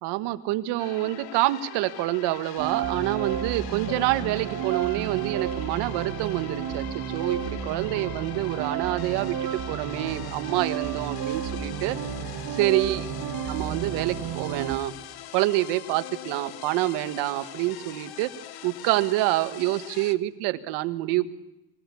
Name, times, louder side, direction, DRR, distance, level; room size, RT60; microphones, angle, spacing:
voice 1, 0.0-12.0 12.5-13.0 13.4-14.9 15.3-18.3 18.6-21.3, right 16 dB, 80° right, 11 dB, 1.6 m, -27 dB
sound 1, 0.8-20.1, left 12 dB, 65° left, 1.4 m, -42 dB
sound 2, 2.6-14.8, right 8 dB, 50° right, 2.2 m, -32 dB
24.5 x 18.0 x 8.5 m, 0.91 s
cardioid pair, 125°, 40 cm